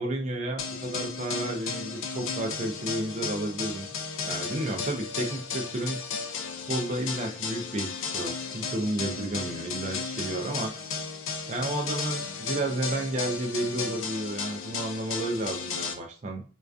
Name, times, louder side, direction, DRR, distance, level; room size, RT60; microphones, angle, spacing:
voice 1, 0.0-3.9 4.2-6.0 6.7-10.7 11.5-16.5, right 1 dB, 35° right, 3 dB, 0.3 m, -32 dB
sound 1, 0.6-15.9, left 5 dB, 90° left, 0.4 m, -34 dB
2.4 x 2.2 x 2.3 m, 0.39 s
head